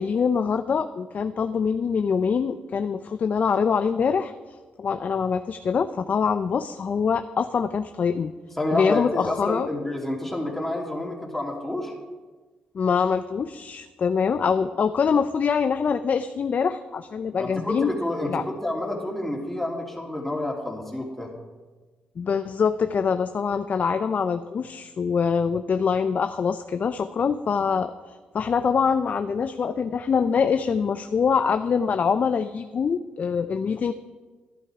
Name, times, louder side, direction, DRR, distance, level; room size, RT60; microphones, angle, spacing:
voice 1, 0.0-4.3 4.8-8.3 8.7-9.7 12.7-17.9 18.3-18.4 22.2-33.9, left 6 dB, 50° left, 10 dB, 0.5 m, -24 dB
voice 2, 8.6-11.9 17.4-21.3, left 1 dB, 5° left, -1 dB, 3.0 m, -29 dB
12.0 x 11.0 x 4.8 m, 1.3 s
cardioid pair, 70°, 3 cm